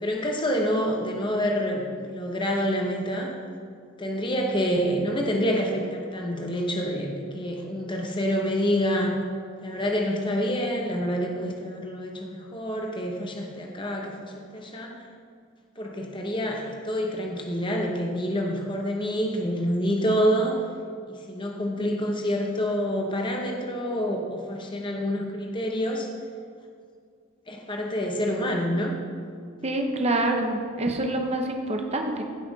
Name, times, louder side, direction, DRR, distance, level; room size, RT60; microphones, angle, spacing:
voice 1, 0.0-3.3 4.0-9.1 9.6-15.0 15.8-20.6 21.1-26.1 27.5-28.9, equal, 20° left, 1 dB, 1.0 m, -27 dB
voice 2, 29.6-32.2, right 1 dB, 30° right, 3 dB, 0.9 m, -26 dB
16.0 x 5.9 x 4.1 m, 2.2 s
head